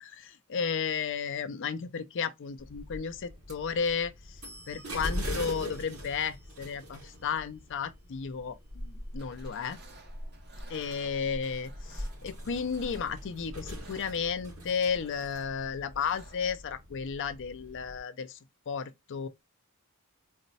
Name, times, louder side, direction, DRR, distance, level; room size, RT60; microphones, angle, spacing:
voice 1, 0.0-4.4 4.7-9.8 10.7-18.4 18.7-19.3, left 6 dB, 60° left, 0.5 m, -33 dB
sound 1, 2.6-18.0, left 1 dB, 70° right, 2.6 m, -42 dB
sound 2, 9.1-16.6, right 3 dB, 50° right, 1.0 m, -56 dB
4.1 x 2.1 x 4.0 m
head